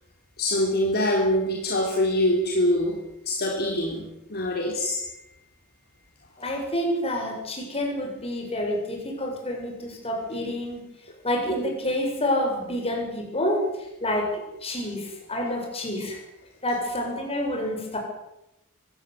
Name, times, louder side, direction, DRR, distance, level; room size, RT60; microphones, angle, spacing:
voice 1, 0.4-3.0 3.3-4.0 4.3-5.0, left 1 dB, 50° left, -1 dB, 4.3 m, -24 dB
voice 2, 6.4-10.8 11.2-13.7 14.0-14.3 14.6-16.2 16.6-18.0, left 1 dB, 25° left, 1 dB, 7.8 m, -28 dB
24.0 x 17.0 x 9.7 m, 0.91 s
head